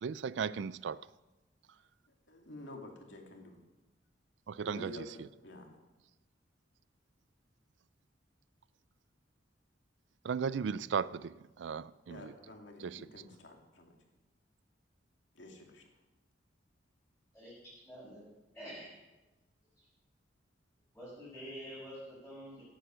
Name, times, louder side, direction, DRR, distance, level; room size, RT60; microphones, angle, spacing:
voice 1, 0.0-1.0 4.5-5.3 10.2-12.3 12.8-13.2, right 6 dB, 70° right, 0.4 m, -36 dB
voice 2, 2.3-3.6 4.6-5.1 5.4-5.7 12.1-14.0 15.3-15.8, left 1 dB, 80° left, 2.5 m, -49 dB
voice 3, 17.9-18.3 18.5-18.9 19.8-19.9 20.9-22.6, equal, 5° left, 5.7 m, -47 dB
17.0 x 9.0 x 6.3 m
head